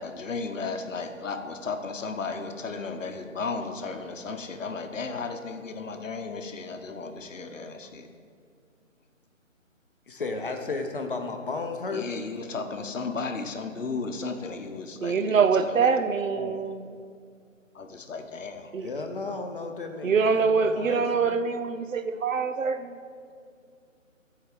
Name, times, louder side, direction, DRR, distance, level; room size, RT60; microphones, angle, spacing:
voice 1, 0.0-8.0 11.9-15.8 16.4-16.5 17.8-18.7, left 4 dB, 70° left, 6 dB, 0.9 m, -34 dB
voice 2, 10.1-12.1 18.8-21.4, left 3 dB, 40° left, 5 dB, 0.7 m, -34 dB
voice 3, 15.0-16.9 18.7-18.9 20.0-23.0, right 5 dB, 75° right, 10 dB, 0.7 m, -24 dB
13.5 x 4.7 x 3.6 m, 2.3 s
figure-of-eight pair, 155°, 40 cm